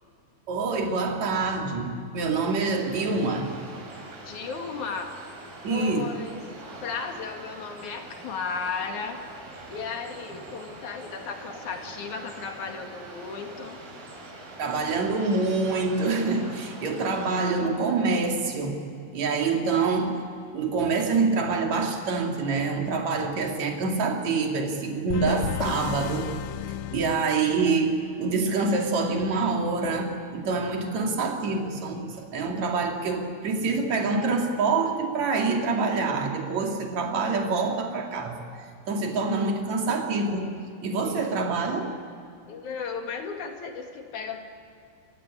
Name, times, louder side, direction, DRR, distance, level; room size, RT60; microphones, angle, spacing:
voice 1, 0.5-3.5 5.6-6.0 14.6-18.8 19.1-20.2 20.5-26.3 26.9-38.4 38.9-41.9, right 4 dB, 45° right, 2 dB, 3.0 m, -26 dB
sound 1, 2.8-17.6, right 2 dB, 80° right, 8.2 m, -43 dB
voice 2, 4.2-5.4 5.7-6.4 6.8-9.3 9.7-13.8 42.5-44.4, left 5 dB, 50° left, 4 dB, 2.7 m, -35 dB
sound 2, 25.1-27.9, left 13 dB, 90° left, 2.3 m, -33 dB
29.0 x 15.5 x 9.9 m, 2.5 s
omnidirectional pair, 5.6 m